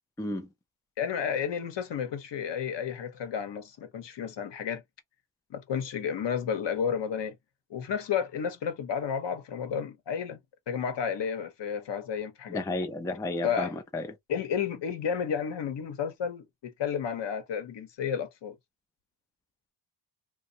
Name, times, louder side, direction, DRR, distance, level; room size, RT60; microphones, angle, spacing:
voice 1, 0.2-0.5 12.5-14.1, left 2 dB, 5° left, 0.4 m, -32 dB
voice 2, 1.0-4.8 5.5-7.4 7.7-10.4 10.7-12.6 13.4-13.7 14.3-18.5, left 7 dB, 55° left, 0.9 m, -32 dB
2.6 x 2.2 x 2.7 m
cardioid pair, 110°, 50 cm